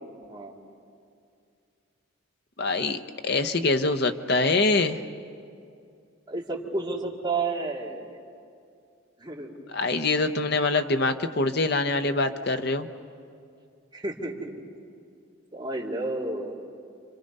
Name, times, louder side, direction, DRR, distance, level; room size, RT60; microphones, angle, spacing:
voice 1, 2.6-5.0 9.7-12.9, left 3 dB, 50° left, 7 dB, 0.9 m, -24 dB
voice 2, 6.3-8.1 9.2-9.5 13.9-14.5 15.5-16.6, right 3 dB, 20° right, -4 dB, 2.6 m, -31 dB
30.0 x 25.0 x 5.5 m, 2.4 s
head